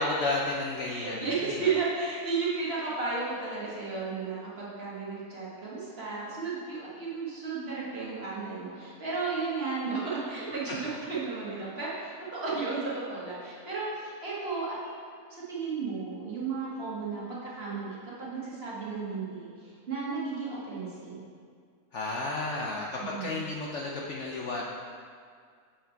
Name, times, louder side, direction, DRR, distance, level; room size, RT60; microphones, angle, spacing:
voice 1, 0.0-1.6 21.9-24.6, left 2 dB, 65° left, -2 dB, 0.8 m, -32 dB
voice 2, 0.9-15.0 15.3-19.5 19.9-21.2 23.0-23.4, right 4 dB, 45° right, -7 dB, 1.8 m, -34 dB
7.1 x 4.4 x 4.5 m, 2.1 s
omnidirectional pair, 1.6 m